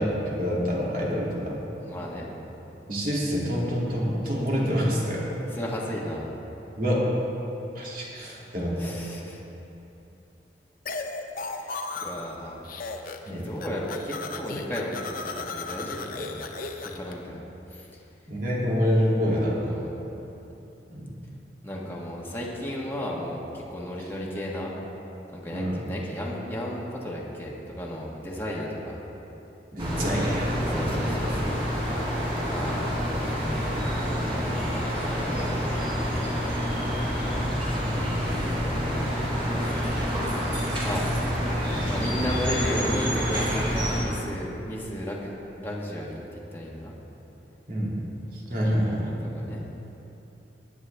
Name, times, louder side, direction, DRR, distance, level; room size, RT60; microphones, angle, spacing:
voice 1, 0.0-1.6 2.9-5.2 6.8-7.0 7.7-8.9 13.3-13.4 18.3-19.8 20.9-21.1 25.5-25.8 29.7-31.0 47.7-48.0 48.3-49.1, equal, 50° right, -5 dB, 2.7 m, -27 dB
voice 2, 1.8-2.3 5.4-6.3 8.8-9.4 11.5-12.6 13.3-17.4 17.7-17.9 19.6-19.9 21.6-24.7 25.3-29.0 30.7-31.6 32.4-32.9 33.9-35.9 37.6-39.0 39.3-40.2 40.5-41.1 41.8-45.3 45.6-47.0 48.6-48.8 49.2-49.6, equal, 15° left, -4 dB, 1.4 m, -35 dB
sound 1, 10.9-12.4 12.6-13.3 13.6-17.1, left 3 dB, 50° left, 0.7 m, -35 dB
sound 2, 29.8-44.0, equal, 30° right, 3.2 m, -27 dB
18.0 x 10.0 x 3.4 m, 3.0 s
head